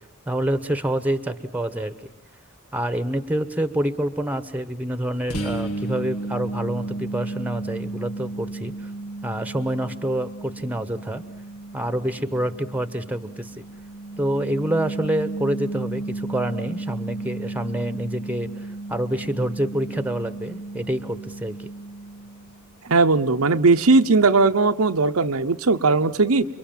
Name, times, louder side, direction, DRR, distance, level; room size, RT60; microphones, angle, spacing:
voice 1, 0.3-2.0 2.7-8.7 9.2-11.2 11.7-13.5 14.2-21.7, right 1 dB, 5° right, 12 dB, 1.1 m, -27 dB
sound 1, 5.3-22.8, right 2 dB, 90° left, 2.0 m, -34 dB
voice 2, 22.8-26.5, right 3 dB, 80° right, 7 dB, 0.9 m, -18 dB
29.0 x 23.5 x 7.4 m, 0.86 s
head